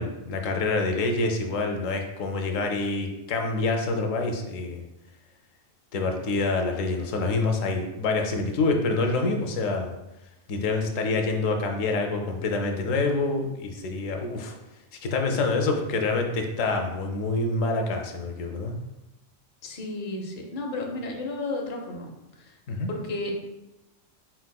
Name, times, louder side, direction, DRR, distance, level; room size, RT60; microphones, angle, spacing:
voice 1, 0.0-4.8 5.9-9.9 10.5-14.5 15.0-18.8 22.7-22.9, left 3 dB, 90° left, 4 dB, 1.0 m, -26 dB
voice 2, 19.6-22.1 22.4-22.5 22.9-23.3, left 2 dB, 50° left, 0 dB, 0.8 m, -33 dB
4.6 x 4.1 x 2.3 m, 0.95 s
omnidirectional pair, 1.3 m